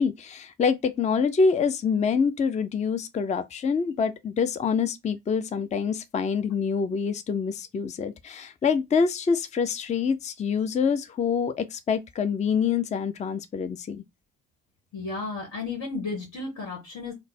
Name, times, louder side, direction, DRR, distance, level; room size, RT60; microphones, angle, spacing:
voice 1, 0.0-14.0, left 6 dB, 25° left, 0.4 m, -26 dB
voice 2, 14.9-17.1, left 3 dB, 65° left, 1.6 m, -33 dB
3.2 x 2.1 x 4.0 m
cardioid pair, 90°, 30 cm